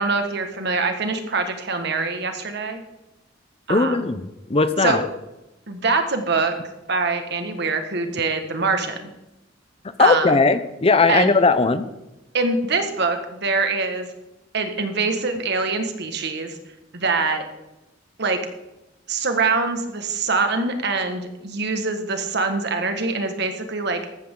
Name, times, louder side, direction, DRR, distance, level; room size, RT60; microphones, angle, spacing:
voice 1, 0.0-2.8 3.7-4.1 4.8-5.0 5.7-6.5 6.9-9.1 10.0-10.3 11.1-11.3 12.3-14.1 14.5-16.6 16.9-17.4 18.2-18.4 19.1-24.0, right 4 dB, 60° right, 6 dB, 1.7 m, -24 dB
voice 2, 3.7-5.0 10.0-11.9, left 3 dB, 30° left, 12 dB, 0.7 m, -18 dB
14.5 x 12.0 x 3.8 m, 0.96 s
head